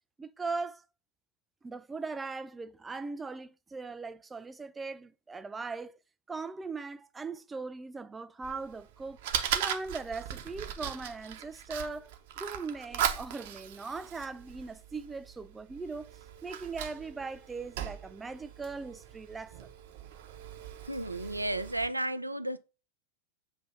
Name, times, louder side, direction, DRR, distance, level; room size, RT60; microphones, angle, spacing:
voice 1, 0.2-0.8 1.6-6.0 6.3-9.3 9.5-16.1 16.4-19.6, right 4 dB, 15° right, 0.5 m, -39 dB
Fire, 8.4-21.9, right 10 dB, 50° right, 0.9 m, -39 dB
voice 2, 20.8-22.6, right 1 dB, 85° right, 0.5 m, -33 dB
7.8 x 2.8 x 5.4 m
figure-of-eight pair, 90°, 0 cm